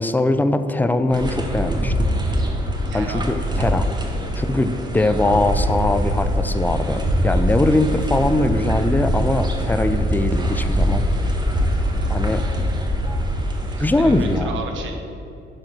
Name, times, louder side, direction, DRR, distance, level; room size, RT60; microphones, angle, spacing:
voice 1, 0.0-2.1 2.9-3.9 4.4-11.0 12.1-12.4 13.8-14.5, left 2 dB, 10° left, 10 dB, 0.5 m, -21 dB
sound 1, 1.1-14.4, equal, 20° right, 1.2 m, -23 dB
voice 2, 2.9-3.3 4.3-4.7 11.8-12.2 13.7-15.0, right 4 dB, 75° right, 3 dB, 1.3 m, -35 dB
10.5 x 3.7 x 6.5 m, 2.8 s
cardioid pair, 90°, 20 cm